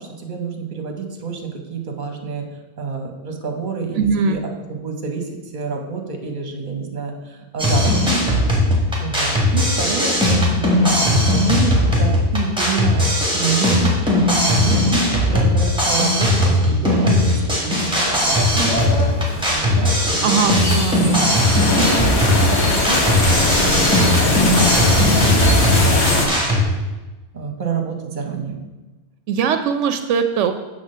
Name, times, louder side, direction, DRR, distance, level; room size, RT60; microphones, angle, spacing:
voice 1, 0.0-2.5 2.8-4.4 4.7-8.0 9.0-20.5 20.9-21.4 22.5-26.3 27.3-28.6, right 5 dB, 45° right, 3 dB, 1.1 m, -28 dB
voice 2, 3.9-4.4 20.2-21.3 29.3-30.5, right 6 dB, 85° right, 8 dB, 0.9 m, -20 dB
sound 1, 7.6-26.6, left 1 dB, 5° right, 1.6 m, -18 dB
sound 2, 17.8-26.3, left 2 dB, 65° left, 1.4 m, -21 dB
7.3 x 3.7 x 6.5 m, 1.2 s
omnidirectional pair, 1.2 m